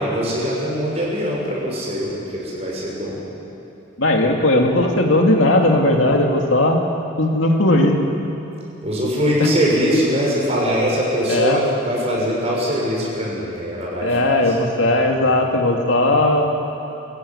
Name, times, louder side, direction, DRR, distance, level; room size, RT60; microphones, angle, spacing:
voice 1, 0.0-3.2 8.8-14.1 14.5-14.6, equal, 30° right, -4 dB, 6.9 m, -22 dB
voice 2, 4.0-6.8 7.2-8.0 9.4-9.5 11.3-11.6 14.0-16.5, left 1 dB, 70° left, 2 dB, 2.4 m, -17 dB
25.0 x 15.0 x 9.7 m, 2.8 s
head